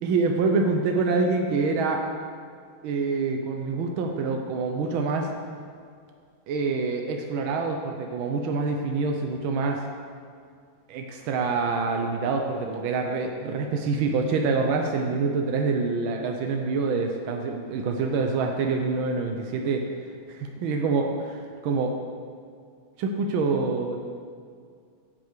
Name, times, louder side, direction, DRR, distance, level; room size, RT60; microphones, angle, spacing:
voice 1, 0.0-2.0 2.8-5.3 6.5-9.8 10.9-19.9 20.3-21.1 21.6-22.0 23.0-24.0, right 4 dB, 85° right, 3 dB, 1.6 m, -26 dB
9.3 x 7.8 x 6.6 m, 2.2 s
omnidirectional pair, 2.2 m